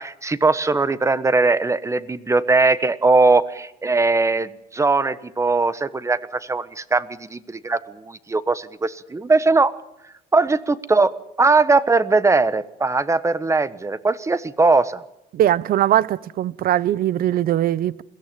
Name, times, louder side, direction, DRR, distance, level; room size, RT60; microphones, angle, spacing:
voice 1, 0.0-9.7 10.3-11.1 11.4-15.0, right 3 dB, 15° right, 1.2 m, -20 dB
voice 2, 15.3-18.0, right 12 dB, 60° right, 0.7 m, -20 dB
22.0 x 16.5 x 9.0 m
cardioid pair, 110°, 17 cm